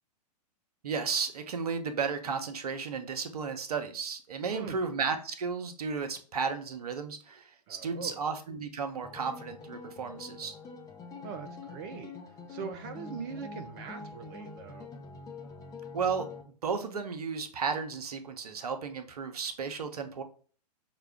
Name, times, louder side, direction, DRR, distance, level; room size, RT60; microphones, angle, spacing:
voice 1, 0.8-10.5 15.9-20.2, right 5 dB, 65° right, 0.8 m, -34 dB
voice 2, 4.5-4.8 7.7-8.2 11.2-12.2 12.5-14.9, right 6 dB, 35° right, 0.4 m, -41 dB
sound 1, 9.0-16.4, left 4 dB, 15° left, 0.7 m, -45 dB
5.7 x 2.3 x 3.4 m
figure-of-eight pair, 110°, 21 cm